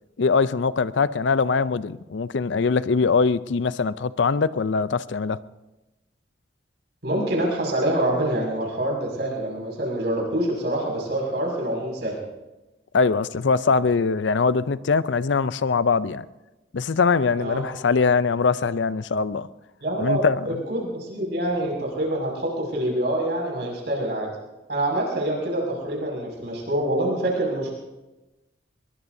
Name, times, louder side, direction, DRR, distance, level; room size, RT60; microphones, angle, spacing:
voice 1, 0.2-5.4 12.9-16.2 16.7-19.5 20.0-20.5, left 4 dB, 75° left, 0.5 m, -22 dB
voice 2, 7.0-12.2 17.4-17.7 19.8-24.3 24.7-27.7, right 1 dB, 65° right, 6.1 m, -26 dB
23.0 x 22.0 x 2.7 m
head